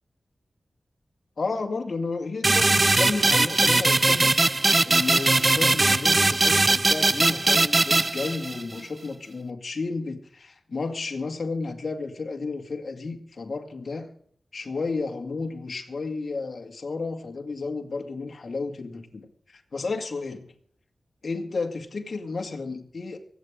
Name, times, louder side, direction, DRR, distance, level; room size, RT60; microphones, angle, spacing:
voice 1, 1.4-4.3 4.8-14.1 14.5-20.5 21.2-23.2, left 3 dB, 65° left, 4 dB, 2.2 m, -32 dB
sound 1, 2.4-8.8, right 2 dB, 40° right, 0.4 m, -20 dB
24.0 x 8.8 x 3.8 m, 0.62 s
cardioid pair, 50°, 0 cm